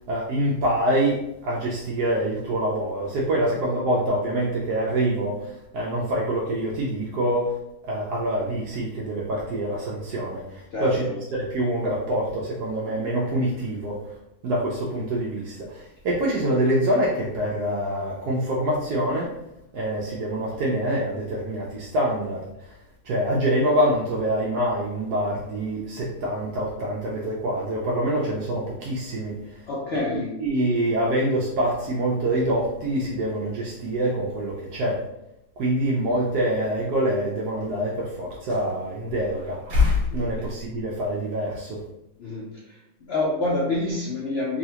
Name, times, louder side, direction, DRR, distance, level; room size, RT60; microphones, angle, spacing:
voice 1, 0.1-7.5 7.9-14.0 14.4-19.3 19.7-22.4 23.0-29.3 30.4-35.0 35.6-41.8, right 1 dB, 70° right, -3 dB, 1.1 m, -25 dB
voice 2, 10.7-11.1 29.7-30.4 40.1-40.3 42.2-44.6, left 2 dB, 70° left, -4 dB, 0.6 m, -28 dB
3.8 x 2.4 x 2.8 m, 0.85 s
omnidirectional pair, 1.8 m